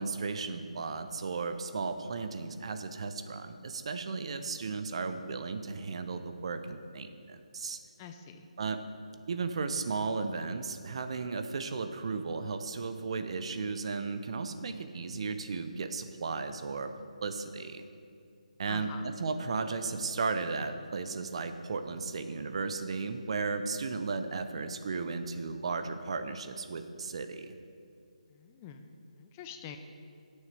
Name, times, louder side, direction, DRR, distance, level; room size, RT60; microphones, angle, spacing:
voice 1, 0.0-7.8 8.6-8.8 9.3-16.9 17.2-17.8 18.6-27.5, right 4 dB, 50° right, 9 dB, 0.6 m, -35 dB
voice 2, 8.0-8.5 18.7-19.0 28.3-29.8, left 7 dB, 20° left, 6 dB, 0.4 m, -47 dB
16.5 x 6.4 x 3.4 m, 2.4 s
figure-of-eight pair, 155°, 4 cm